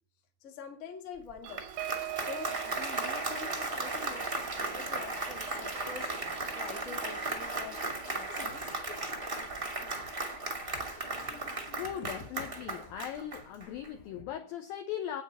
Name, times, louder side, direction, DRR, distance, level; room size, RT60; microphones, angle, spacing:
voice 1, 0.4-1.6 2.2-6.1 6.5-8.7, left 6 dB, 35° left, 2 dB, 1.1 m, -46 dB
Applause, 1.3-13.9, right 2 dB, 65° right, 0.5 m, -36 dB
sound 1, 1.4-10.4 10.8-11.0 11.3-11.6, right 17 dB, 90° right, 3.1 m, -46 dB
sound 2, 6.6-14.2, left 4 dB, 60° left, 3.2 m, -54 dB
voice 2, 11.8-15.2, left 10 dB, 75° left, 6 dB, 2.1 m, -39 dB
9.1 x 8.8 x 8.1 m, 0.41 s
omnidirectional pair, 5.2 m